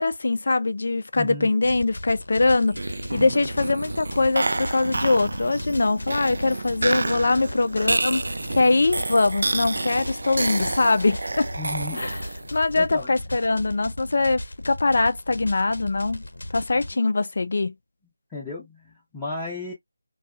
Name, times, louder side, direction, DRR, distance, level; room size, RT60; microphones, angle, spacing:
voice 1, 0.0-11.5 12.0-12.2 12.5-16.2 16.5-17.7, left 3 dB, 55° left, 0.4 m, -22 dB
voice 2, 1.2-1.5 3.1-3.4 11.6-12.0 12.8-13.1 16.9-17.0 18.3-19.7, left 3 dB, 10° left, 0.7 m, -34 dB
sound 1, 1.6-16.9, left 1 dB, 85° left, 0.8 m, -37 dB
sound 2, 2.7-12.6, right 2 dB, 75° right, 0.3 m, -29 dB
2.7 x 2.3 x 2.3 m
figure-of-eight pair, 170°, 0 cm